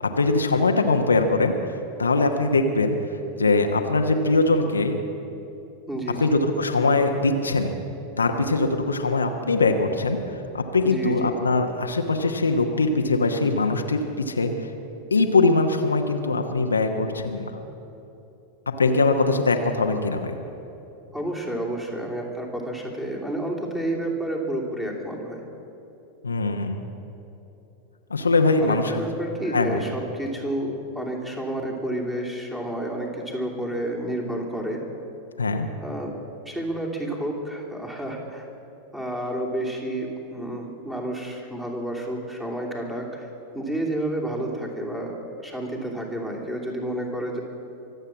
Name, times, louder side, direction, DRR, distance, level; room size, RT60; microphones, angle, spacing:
voice 1, 0.0-3.0 3.4-5.0 6.2-7.7 8.2-10.2 10.5-14.7 15.1-17.5 18.8-20.3 26.2-26.8 28.1-29.0 29.5-29.8 35.4-35.7, left 3 dB, 75° left, 4 dB, 1.0 m, -22 dB
voice 2, 5.9-6.4 10.8-11.3 21.1-25.4 28.6-34.8 35.8-36.1 36.4-38.4 38.9-43.3 43.5-47.4, right 1 dB, 10° right, -1 dB, 3.0 m, -30 dB
24.0 x 8.1 x 7.4 m, 2.9 s
figure-of-eight pair, 90°, 0 cm